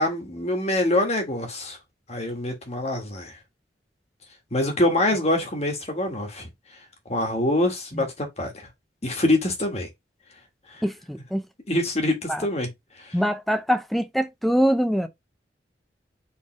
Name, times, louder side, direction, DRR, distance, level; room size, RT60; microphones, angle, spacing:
voice 1, 0.0-1.8 2.1-3.4 4.5-6.5 7.1-8.7 9.0-9.9 10.7-10.8 11.7-12.7 13.0-13.1, left 1 dB, 40° left, 1.3 m, -25 dB
voice 2, 10.8-11.4 12.3-12.5 13.1-15.1, equal, ahead, 0.4 m, -24 dB
4.3 x 3.3 x 3.0 m
head